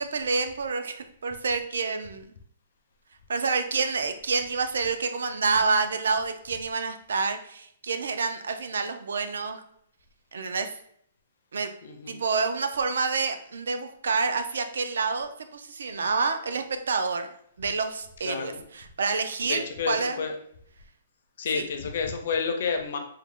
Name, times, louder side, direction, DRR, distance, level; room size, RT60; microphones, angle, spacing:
voice 1, 0.0-2.2 3.3-9.6 10.3-10.7 11.5-11.7 12.1-17.3 17.6-20.2 21.5-21.6, right 4 dB, 85° right, 8 dB, 0.4 m, -28 dB
voice 2, 11.8-12.2 18.2-18.7 19.4-20.3 21.4-23.0, left 5 dB, 45° left, 5 dB, 0.5 m, -30 dB
3.6 x 2.1 x 3.6 m, 0.66 s
hypercardioid pair, 180°, 0 cm